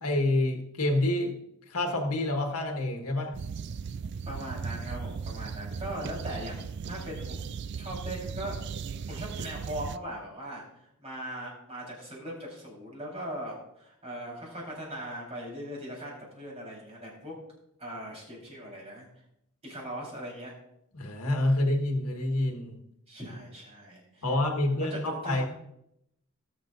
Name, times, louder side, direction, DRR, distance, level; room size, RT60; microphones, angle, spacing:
voice 1, 0.0-1.3 1.7-3.3 20.9-22.7 24.2-25.4, left 1 dB, 85° left, 2 dB, 1.6 m, -27 dB
sound 1, 3.3-10.0, right 5 dB, 50° right, 0.3 m, -37 dB
voice 2, 4.2-8.6 8.8-17.3 17.8-19.1 19.6-20.5 23.1-24.3 24.6-25.4, right 1 dB, 30° right, -3 dB, 4.2 m, -40 dB
19.0 x 7.3 x 2.6 m, 0.79 s
head